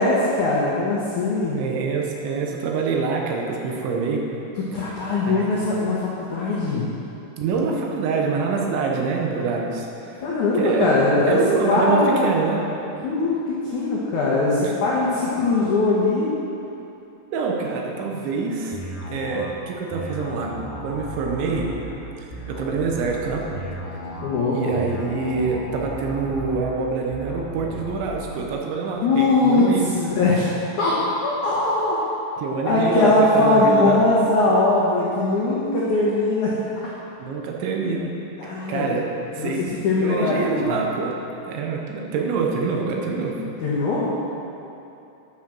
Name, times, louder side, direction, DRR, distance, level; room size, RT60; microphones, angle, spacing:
voice 1, 0.0-1.6 4.7-6.9 10.2-11.4 11.7-12.3 13.0-16.4 24.2-24.7 29.0-31.0 31.2-32.0 32.6-36.6 38.4-39.0 39.4-40.8 43.6-44.1, left 2 dB, 75° left, -6 dB, 1.8 m, -21 dB
voice 2, 1.5-4.2 5.2-5.6 7.4-9.9 10.6-10.9 11.3-12.7 17.3-18.8 19.1-20.5 20.8-21.7 22.2-23.4 24.5-29.9 32.4-34.0 37.2-38.1 38.4-39.0 39.4-39.6 40.0-41.1 41.4-43.5, right 4 dB, 75° right, 0 dB, 3.3 m, -25 dB
sound 1, 18.7-28.3, equal, 50° left, 3.9 m, -35 dB
9.4 x 9.2 x 6.2 m, 2.9 s
omnidirectional pair, 5.5 m